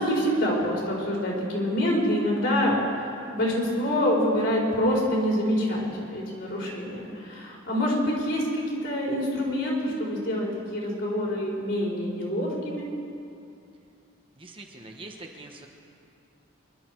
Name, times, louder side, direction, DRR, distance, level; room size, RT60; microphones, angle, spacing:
voice 1, 0.0-2.8 3.3-12.9, equal, 60° left, -3 dB, 4.3 m, -26 dB
voice 2, 14.3-15.7, right 2 dB, 25° right, 2 dB, 1.2 m, -43 dB
25.0 x 12.0 x 4.7 m, 2.5 s
head